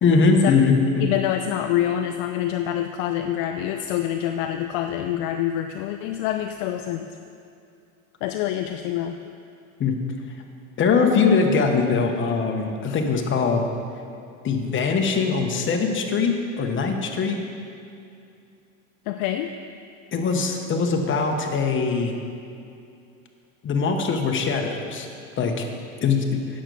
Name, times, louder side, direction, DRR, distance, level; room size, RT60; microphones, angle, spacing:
voice 1, 0.0-1.1 9.8-9.9 10.8-13.7 14.4-17.4 20.1-22.1 23.6-25.1 25.4-25.7 26.0-26.2, left 4 dB, 30° left, 3 dB, 1.2 m, -21 dB
voice 2, 1.0-7.1 8.2-9.2 12.8-13.0 19.1-19.5, left 11 dB, 55° left, 7 dB, 0.5 m, -26 dB
8.7 x 6.4 x 6.9 m, 2.5 s
supercardioid pair, 110°, 41 cm